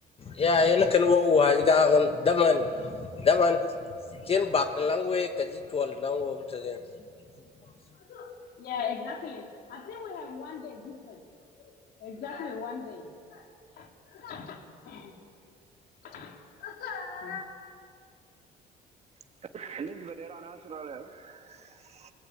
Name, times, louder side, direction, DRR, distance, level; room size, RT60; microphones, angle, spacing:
voice 1, 0.2-3.6 4.1-6.8, left 4 dB, 35° left, 6 dB, 1.3 m, -24 dB
voice 2, 8.0-11.2 11.6-15.1 16.0-17.4, left 6 dB, 65° left, 2 dB, 3.5 m, -39 dB
voice 3, 19.5-22.1, right 5 dB, 40° right, 6 dB, 1.6 m, -42 dB
29.0 x 19.0 x 8.7 m, 2.4 s
cardioid pair, 110°, 17 cm